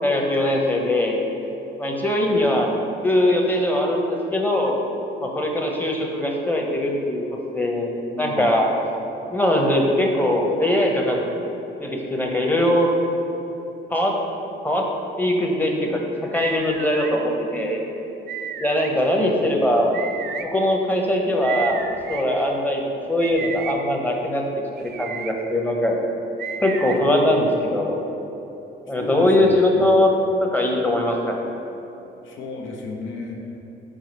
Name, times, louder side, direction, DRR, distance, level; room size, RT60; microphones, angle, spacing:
voice 1, 0.0-1.2 1.8-2.7 3.0-4.8 5.2-7.2 7.5-8.7 9.3-11.3 11.8-12.9 13.9-14.2 14.6-14.9 15.2-17.8 18.6-20.0 20.4-22.8 23.1-24.4 24.8-26.0 26.6-28.0 28.9-30.1 30.4-31.5, left 1 dB, 10° left, 0 dB, 0.8 m, -21 dB
voice 2, 8.1-8.5 29.0-29.6 32.2-33.7, left 3 dB, 75° left, 1 dB, 0.8 m, -34 dB
sound 1, 16.3-17.1 18.3-18.9 19.9-20.4 21.4-22.2 23.2-23.8 24.8-25.3 26.4-27.0, right 7 dB, 55° right, 0.4 m, -32 dB
4.9 x 3.9 x 5.2 m, 3.0 s
cardioid pair, 90°, 20 cm